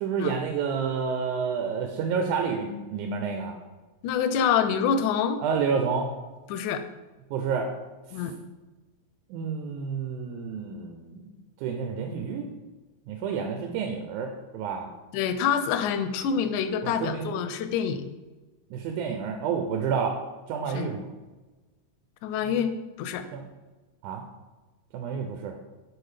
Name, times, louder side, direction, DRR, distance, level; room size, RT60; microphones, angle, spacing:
voice 1, 0.0-3.5 5.4-6.1 7.3-7.7 9.3-11.3 11.6-12.5 13.1-14.9 16.8-17.3 18.7-20.2 20.5-21.1 23.3-23.5 24.0-24.2 24.9-25.5, right 6 dB, 90° right, 4 dB, 2.1 m, -29 dB
voice 2, 4.0-5.4 6.5-6.8 8.1-8.4 15.1-18.1 20.7-20.9 22.2-23.2, left 7 dB, 85° left, 10 dB, 2.0 m, -26 dB
6.3 x 4.6 x 4.9 m, 1.2 s
omnidirectional pair, 3.4 m